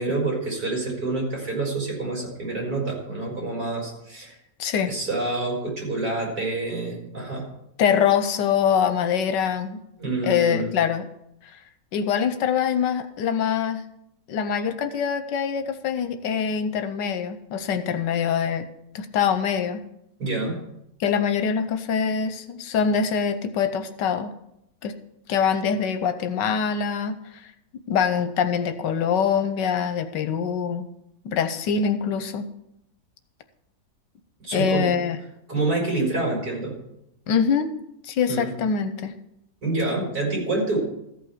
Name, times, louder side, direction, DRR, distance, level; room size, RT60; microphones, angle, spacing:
voice 1, 0.0-4.4 4.9-7.5 10.0-10.7 20.2-20.6 34.4-34.9 35.5-36.7 38.3-38.5 39.6-40.8, right 2 dB, 55° right, -2 dB, 5.4 m, -27 dB
voice 2, 4.6-4.9 7.8-9.8 10.2-11.1 11.4-11.6 11.9-13.8 14.3-18.7 18.9-19.8 21.0-24.3 24.8-24.9 25.3-27.5 27.9-30.9 31.2-32.5 34.5-35.2 37.3-37.8 38.0-39.2, left 7 dB, 85° left, 10 dB, 1.4 m, -24 dB
14.0 x 5.9 x 7.3 m, 0.82 s
omnidirectional pair, 1.9 m